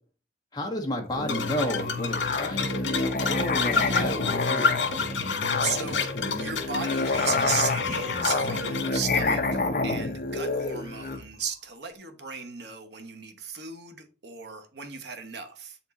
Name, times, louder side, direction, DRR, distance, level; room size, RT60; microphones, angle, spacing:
voice 1, 0.5-4.7, equal, 20° left, 1.6 m, -32 dB
Musical instrument, 1.1-11.2, left 3 dB, 50° left, 0.8 m, -28 dB
sound 1, 1.3-9.0, left 5 dB, 80° left, 1.8 m, -30 dB
voice 2, 5.3-6.1 6.4-15.8, right 6 dB, 65° right, 1.2 m, -35 dB
8.1 x 4.4 x 4.2 m
head